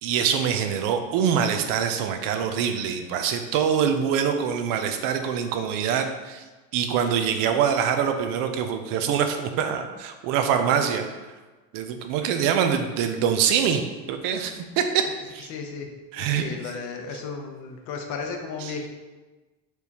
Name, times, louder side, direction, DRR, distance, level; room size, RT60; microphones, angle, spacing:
voice 1, 0.0-6.4 6.7-11.1 11.7-13.8 14.1-15.0 15.3-15.5 16.1-16.4, right 8 dB, 55° right, 7 dB, 0.5 m, -24 dB
voice 2, 15.5-15.9 16.2-18.9, left 5 dB, 50° left, 4 dB, 0.7 m, -34 dB
4.4 x 3.4 x 2.8 m, 1.2 s
supercardioid pair, 130°, 40 cm